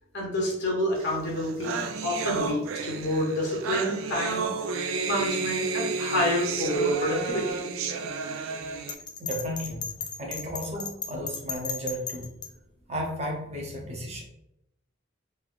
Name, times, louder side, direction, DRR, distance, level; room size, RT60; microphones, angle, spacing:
voice 1, 0.1-7.6, left 1 dB, 55° left, -2 dB, 0.7 m, -28 dB
sound 1, 1.1-1.2 1.3-8.9, right 4 dB, 75° right, 0.3 m, -31 dB
Bell, 8.9-12.5, left 6 dB, 20° left, 0.3 m, -35 dB
voice 2, 9.2-9.9 10.2-12.3 12.9-14.2, equal, 30° right, 0 dB, 0.6 m, -34 dB
3.2 x 2.5 x 2.4 m, 0.83 s
head